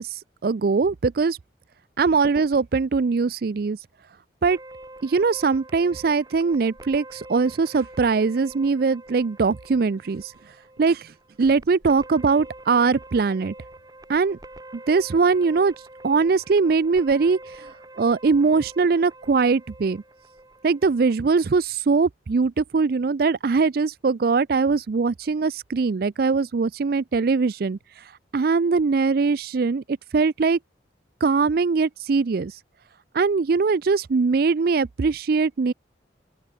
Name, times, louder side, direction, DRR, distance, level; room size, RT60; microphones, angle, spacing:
voice 1, 0.0-1.4 2.0-3.8 4.4-4.6 5.0-10.3 10.8-11.1 11.4-13.5 14.1-14.4 14.7-15.7 16.0-17.7 18.0-20.0 20.6-28.0 28.3-29.8 30.1-30.6 31.2-32.6 33.1-35.7, right 4 dB, 55° right, 0.4 m, -21 dB
sound 1, 4.5-21.6, right 1 dB, 20° right, 3.4 m, -46 dB
open air
head